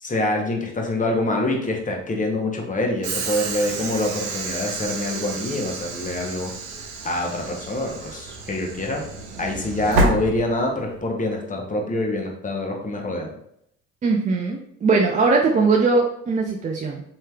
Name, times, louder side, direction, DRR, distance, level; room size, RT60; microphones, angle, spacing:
voice 1, 0.0-6.5 7.0-9.0 9.4-13.3, left 1 dB, 20° left, 0 dB, 0.8 m, -25 dB
Train / Sliding door, 3.0-11.0, right 2 dB, 80° right, 0.7 m, -29 dB
voice 2, 14.0-17.0, right 4 dB, 20° right, 0 dB, 0.3 m, -20 dB
3.1 x 2.8 x 2.3 m, 0.73 s
hypercardioid pair, 60°, 39 cm